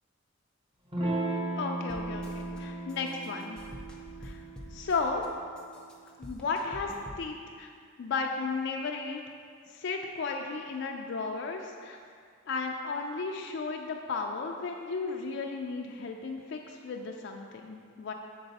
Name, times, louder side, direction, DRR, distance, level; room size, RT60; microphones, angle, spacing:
Electric guitar / Strum, 0.9-6.0, right 2 dB, 30° right, 1.1 m, -36 dB
voice 1, 1.3-3.6 4.2-4.4 4.7-5.2 6.2-7.7 8.0-9.2 9.7-12.0 12.5-18.1, left 4 dB, 60° left, 2 dB, 0.4 m, -34 dB
sound 1, 1.9-2.6 2.9-5.3 5.6-7.2, left 1 dB, 5° left, 0.5 m, -47 dB
6.8 x 4.0 x 4.0 m, 2.1 s
head